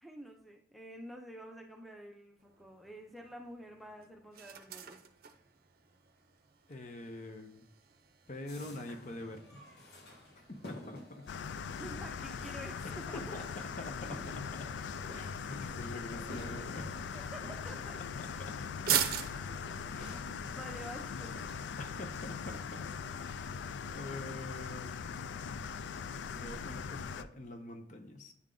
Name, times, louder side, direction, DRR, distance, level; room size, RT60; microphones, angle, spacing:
voice 1, 0.0-5.0 11.8-13.2 17.1-18.0 19.9-21.4 22.5-22.6, equal, ahead, 1 dB, 0.6 m, -49 dB
sound 1, 2.4-22.0, right 10 dB, 55° right, 0.6 m, -44 dB
voice 2, 6.7-7.6 8.3-9.6 10.4-11.3 12.8-14.7 15.1-17.0 18.2-18.8 19.9-20.2 21.8-22.9 23.2-23.6 23.9-25.7 26.2-28.3, left 2 dB, 45° left, 6 dB, 0.7 m, -46 dB
sound 2, 8.5-21.9, left 1 dB, 70° left, 1.2 m, -52 dB
sound 3, 11.3-27.2, left 6 dB, 90° left, 0.3 m, -41 dB
9.6 x 3.6 x 3.7 m, 0.68 s
head